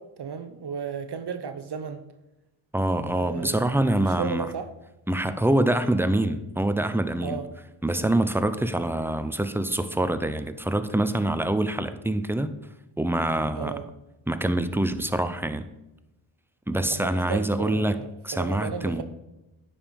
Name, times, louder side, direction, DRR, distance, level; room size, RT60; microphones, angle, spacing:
voice 1, 0.0-2.0 3.1-4.7 7.2-7.5 8.0-8.1 13.6-13.9 16.9-19.0, right 6 dB, 50° right, 0.9 m, -34 dB
voice 2, 2.7-4.5 5.1-7.4 7.8-12.5 13.0-13.7 14.3-15.7 16.7-18.0 18.2-19.0, right 1 dB, 5° right, 0.7 m, -25 dB
9.4 x 5.6 x 5.3 m
cardioid pair, 55°, 50 cm